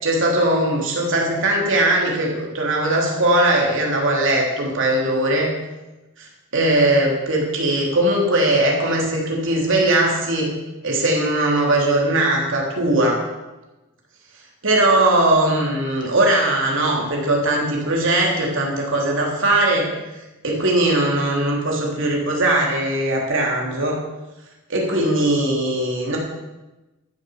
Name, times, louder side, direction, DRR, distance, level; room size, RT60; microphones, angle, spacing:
voice 1, 0.0-5.5 6.2-10.5 10.8-13.2 14.6-19.9 20.4-24.0 24.7-26.2, right 1 dB, 60° right, -1 dB, 3.3 m, -19 dB
13.5 x 7.7 x 7.1 m, 1.1 s
head